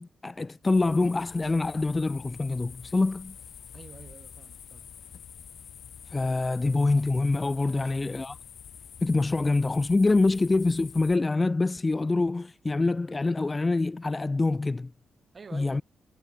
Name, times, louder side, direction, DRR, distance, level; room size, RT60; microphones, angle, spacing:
voice 1, 0.0-3.4 6.1-8.4 9.0-14.9 15.5-15.8, left 3 dB, 25° left, 0.4 m, -25 dB
sound 1, 0.6-11.2, left 8 dB, 70° left, 1.6 m, -47 dB
voice 2, 3.7-4.9 7.6-8.2 10.2-10.3 15.3-15.8, right 5 dB, 40° right, 3.6 m, -49 dB
cardioid pair, 110°, 0 cm